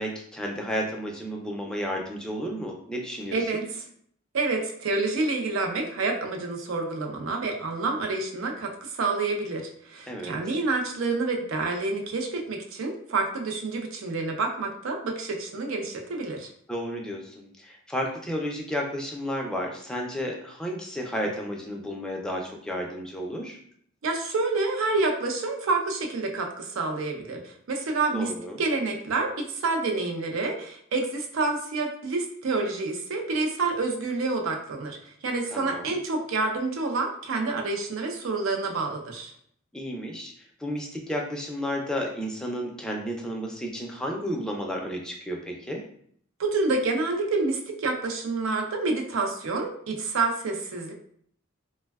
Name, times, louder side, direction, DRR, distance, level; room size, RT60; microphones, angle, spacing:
voice 1, 0.0-3.7 10.1-10.4 16.7-23.6 28.1-28.6 35.5-36.0 39.7-40.3 40.6-45.8, equal, 5° left, 0 dB, 0.3 m, -32 dB
voice 2, 3.3-3.8 4.3-16.5 24.0-28.3 28.6-35.0 35.2-39.3 46.4-50.9, right 3 dB, 85° right, 3 dB, 0.5 m, -28 dB
3.3 x 2.1 x 2.2 m, 0.64 s
head